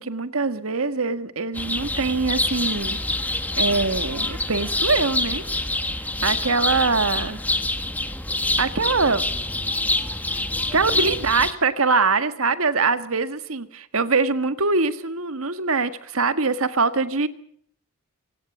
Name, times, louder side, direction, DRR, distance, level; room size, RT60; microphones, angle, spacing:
voice 1, 0.0-3.0 3.6-5.4 6.2-7.4 8.6-9.3 10.3-10.4 10.7-17.3, right 4 dB, 70° right, 12 dB, 1.6 m, -23 dB
sound 1, 1.5-11.5, left 2 dB, 5° left, 1.4 m, -26 dB
26.0 x 17.5 x 7.3 m, 0.63 s
head